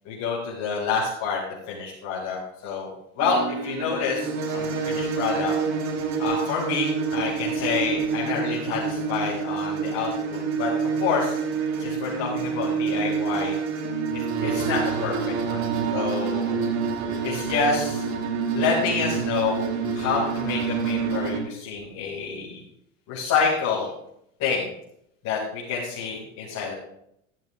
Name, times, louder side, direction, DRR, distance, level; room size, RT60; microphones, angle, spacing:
voice 1, 0.1-1.4 1.7-2.9 3.2-5.5 6.2-10.7 11.0-11.4 11.8-13.6 14.1-16.6 17.2-18.0 18.5-19.7 19.9-22.6 23.1-23.9 24.4-24.7 25.2-26.7, left 5 dB, 50° left, -6 dB, 5.4 m, -28 dB
sound 1, 3.2-21.4, right 5 dB, 45° right, 2.7 m, -27 dB
15.0 x 13.5 x 2.5 m, 0.76 s
hypercardioid pair, 80°, 37 cm